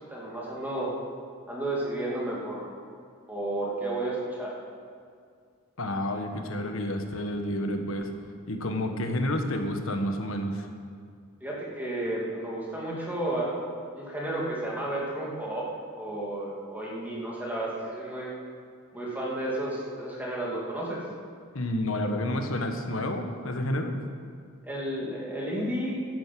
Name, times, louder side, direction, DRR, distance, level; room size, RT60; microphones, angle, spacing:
voice 1, 0.1-1.0 1.5-2.7 3.3-4.6 11.4-13.7 13.9-15.7 15.9-18.3 18.9-21.0 24.6-26.0, right 1 dB, 10° right, -5 dB, 2.5 m, -32 dB
voice 2, 5.8-8.1 8.5-10.7 21.5-24.0, left 1 dB, 65° left, 5 dB, 1.3 m, -30 dB
10.5 x 9.3 x 7.6 m, 2.2 s
head